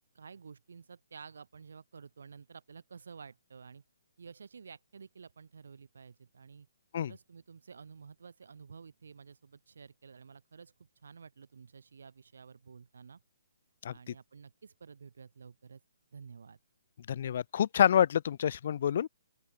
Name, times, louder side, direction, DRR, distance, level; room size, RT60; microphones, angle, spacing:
voice 1, 0.1-3.8 4.2-6.7 7.0-13.2 13.9-15.8 16.1-16.6, right 5 dB, 75° right, 4.4 m, -52 dB
voice 2, 17.1-19.1, left 9 dB, 45° left, 0.4 m, -27 dB
open air
hypercardioid pair, 170°, 0 cm